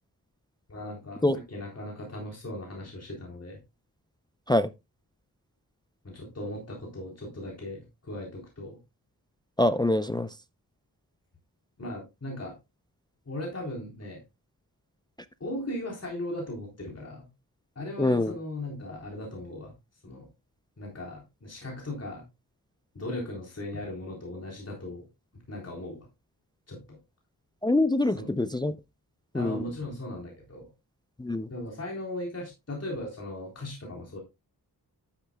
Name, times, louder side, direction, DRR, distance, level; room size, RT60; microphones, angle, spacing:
voice 1, 0.7-1.2 1.5-3.6 6.0-8.8 11.8-12.5 13.3-14.2 15.4-17.3 17.8-19.7 20.0-20.3 20.8-22.2 22.9-25.1 25.5-26.1 26.7-27.0 28.1-28.3 29.3-30.7 31.5-34.2, left 1 dB, 40° left, 3.7 m, -38 dB
voice 2, 9.6-10.3 18.0-18.4 27.6-28.8 29.3-29.7 31.2-31.5, left 1 dB, 10° left, 0.5 m, -25 dB
12.0 x 8.9 x 2.2 m
wide cardioid pair, 80°, 39 cm